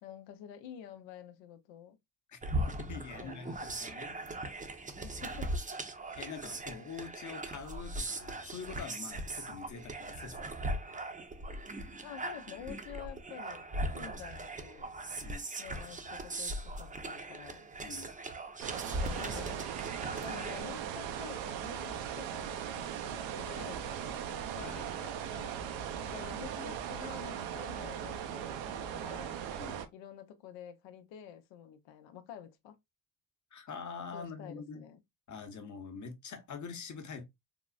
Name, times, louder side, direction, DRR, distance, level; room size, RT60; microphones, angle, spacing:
voice 1, 0.0-2.0 3.1-3.7 5.2-5.6 12.0-13.7 13.9-14.9 15.6-17.7 19.0-19.6 20.2-24.9 26.0-29.5 29.9-32.8 34.1-35.0, left 9 dB, 75° left, 0.7 m, -49 dB
sound 1, 2.4-20.6, right 1 dB, 15° right, 0.6 m, -39 dB
voice 2, 2.8-4.2 5.3-5.4 6.2-10.5 15.2-15.4 17.8-18.1 24.5-25.6 29.5-29.8 33.5-34.9 35.3-37.2, left 5 dB, 40° left, 0.9 m, -45 dB
sound 2, 18.6-29.9, right 9 dB, 75° right, 0.7 m, -39 dB
3.6 x 2.0 x 2.3 m
supercardioid pair, 80°, 46 cm